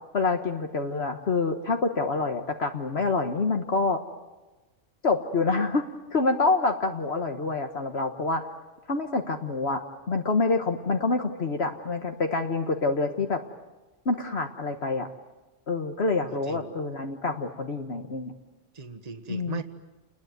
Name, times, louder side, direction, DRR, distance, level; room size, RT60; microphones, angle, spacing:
voice 1, 0.1-4.0 5.0-8.4 8.9-9.8 10.1-13.4 14.0-15.1 15.7-18.3 19.3-19.6, left 3 dB, 60° left, 4 dB, 1.6 m, -27 dB
voice 2, 16.2-16.7 18.7-19.6, right 4 dB, 30° right, 7 dB, 1.5 m, -38 dB
29.5 x 21.0 x 9.4 m, 1.2 s
omnidirectional pair, 1.3 m